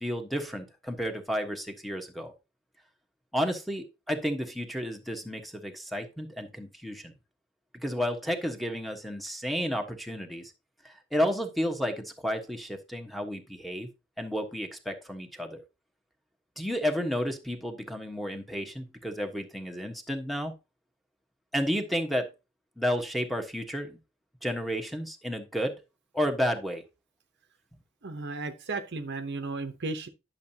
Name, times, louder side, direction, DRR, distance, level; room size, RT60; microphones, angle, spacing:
voice 1, 0.0-2.3 3.3-7.1 7.8-10.5 10.8-13.9 14.2-15.6 16.6-20.5 21.5-22.3 22.8-24.0 24.4-25.8 26.1-26.8, equal, ahead, 1.2 m, -31 dB
voice 2, 28.0-30.1, right 3 dB, 55° right, 0.8 m, -34 dB
10.5 x 6.6 x 2.8 m
head